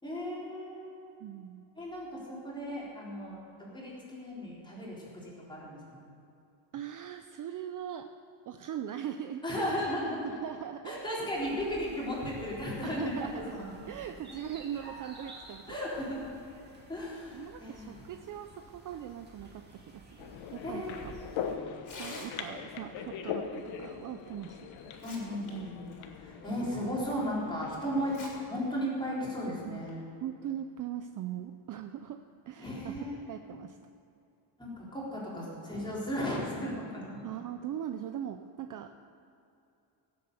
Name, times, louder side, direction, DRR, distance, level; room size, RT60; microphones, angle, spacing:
voice 1, 0.0-1.1 1.8-3.4 3.7-6.1 9.4-10.4 10.8-13.6 14.3-14.4 15.7-16.4 16.9-18.0 20.6-21.3 25.0-25.9 26.2-28.1 28.5-30.0 32.6-33.2 34.6-37.2, equal, 10° left, -6 dB, 3.8 m, -35 dB
voice 2, 1.2-1.6 6.7-8.1 8.5-9.9 10.2-11.6 12.8-13.6 13.9-15.8 17.3-21.1 22.0-24.7 29.6-29.8 30.2-33.0 33.3-33.9 37.2-39.0, right 10 dB, 45° right, 8 dB, 0.5 m, -40 dB
sound 1, 11.4-21.6, right 2 dB, 20° right, 2.1 m, -51 dB
sound 2, 20.2-28.5, left 7 dB, 80° left, 1.2 m, -41 dB
Tearing, 21.7-22.7 24.2-24.3 24.8-25.5 25.9-26.0 26.7-26.8 28.0-28.3 28.7-28.8 29.6-29.9, left 3 dB, 40° left, 3.4 m, -46 dB
16.0 x 7.8 x 6.8 m, 2.7 s
cardioid pair, 155°, 47 cm